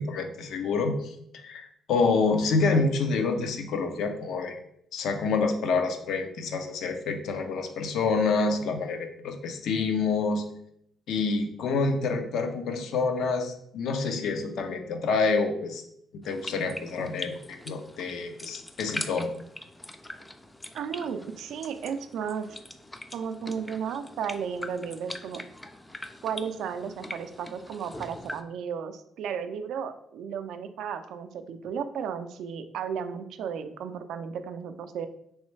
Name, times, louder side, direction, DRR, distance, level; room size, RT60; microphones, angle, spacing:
voice 1, 0.0-4.5 4.9-10.5 11.1-15.8 16.2-19.3, left 4 dB, 75° left, 6 dB, 0.5 m, -27 dB
sound 1, 16.2-28.4, left 1 dB, 10° left, 0.3 m, -42 dB
voice 2, 20.7-22.5 23.1-25.4 26.2-35.1, right 7 dB, 80° right, 9 dB, 0.3 m, -34 dB
3.1 x 3.1 x 3.2 m, 0.71 s
cardioid pair, 90°, 0 cm